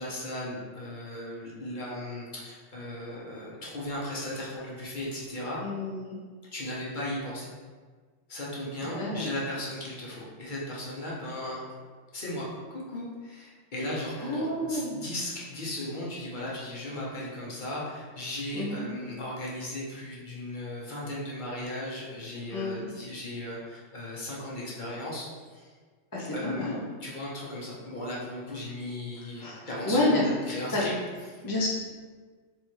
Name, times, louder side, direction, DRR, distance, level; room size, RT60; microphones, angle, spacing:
voice 1, 0.0-5.6 6.5-7.5 8.3-11.6 12.1-12.4 12.7-25.3 25.5-25.7 26.3-26.7 27.0-30.9 31.3-31.4, left 1 dB, 40° left, -5 dB, 1.1 m, -36 dB
voice 2, 5.6-6.2 8.8-9.3 14.2-15.0 18.5-18.9 22.5-22.9 26.1-26.8 29.4-30.2 30.7-30.8 31.4-31.7, left 2 dB, 25° left, -6 dB, 0.5 m, -29 dB
3.4 x 3.1 x 4.4 m, 1.5 s
omnidirectional pair, 1.3 m